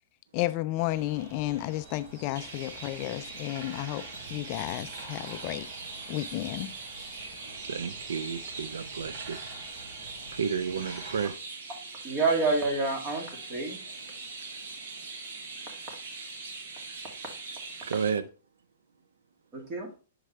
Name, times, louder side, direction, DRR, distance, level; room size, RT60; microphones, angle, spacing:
voice 1, 0.3-5.7 6.1-6.7, left 16 dB, 40° left, 0.3 m, -32 dB
sound 1, 0.9-11.3, right 2 dB, 45° right, 2.7 m, -47 dB
Chirp tweet, 2.4-18.1, right 4 dB, 65° right, 1.5 m, -42 dB
voice 2, 7.6-9.4 9.7-9.9 10.3-11.3 17.8-18.2, right 6 dB, 85° right, 0.5 m, -32 dB
voice 3, 12.0-13.8 19.5-19.9, right 3 dB, 25° right, 2.2 m, -28 dB
6.4 x 4.7 x 3.2 m
hypercardioid pair, 140°, 0 cm